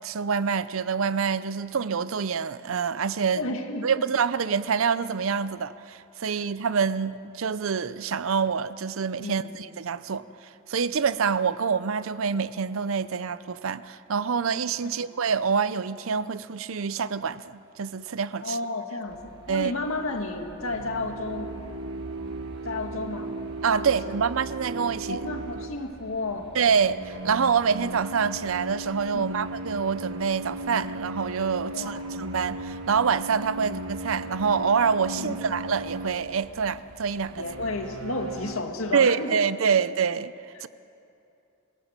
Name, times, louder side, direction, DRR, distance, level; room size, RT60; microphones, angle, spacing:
voice 1, 0.0-3.4 3.8-10.2 10.7-18.6 19.5-19.7 23.6-25.3 26.5-37.4 38.9-40.3 40.6-40.7, right 6 dB, 65° right, 0.6 m, -26 dB
voice 2, 3.3-4.1 6.2-6.4 9.2-9.6 14.8-15.1 18.4-21.6 22.6-23.3 23.8-24.2 25.1-26.5 29.1-29.4 31.7-32.0 35.2-35.5 37.4-39.4, left 2 dB, 70° left, 2.0 m, -32 dB
sound 1, 19.1-38.6, right 1 dB, 50° right, 1.5 m, -51 dB
sound 2, 20.6-25.9 26.6-36.4 37.2-38.6, right 2 dB, 80° right, 1.3 m, -37 dB
27.0 x 17.0 x 7.4 m
head